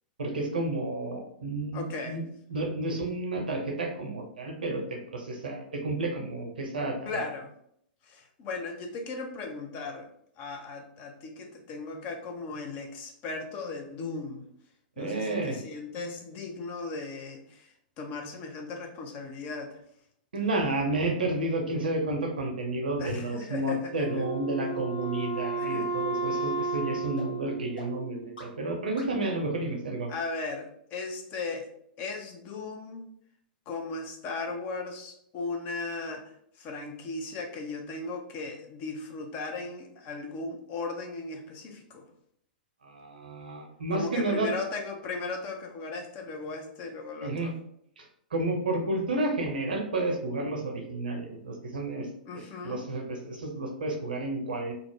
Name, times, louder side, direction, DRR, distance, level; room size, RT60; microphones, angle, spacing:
voice 1, 0.2-2.2 2.5-7.2 15.0-15.6 20.3-30.1 42.8-44.5 47.2-47.5 48.0-48.1 48.3-52.1 52.3-54.7, right 2 dB, 75° right, 3 dB, 0.6 m, -31 dB
voice 2, 1.7-2.2 7.1-7.5 8.0-10.1 10.4-14.4 15.0-17.7 18.0-19.8 23.0-24.3 25.6-25.9 30.1-31.7 32.0-33.1 33.7-36.3 36.6-42.0 43.9-47.6 52.3-52.9, left 3 dB, 35° left, 3 dB, 0.5 m, -37 dB
sound 1, 22.4-22.5 23.0-23.1 23.6-23.7 24.2-24.3 24.8-24.9 25.4-25.5 26.0-26.1 26.6-26.7 27.2-27.3 27.8-27.9 28.4-28.5 29.0-29.1, equal, 70° left, 1.2 m, -46 dB
Wind instrument woodwind instrument, 24.0-28.5, right 4 dB, 20° left, 1.0 m, -33 dB
2.4 x 2.0 x 3.4 m, 0.69 s
figure-of-eight pair, 100°, 5 cm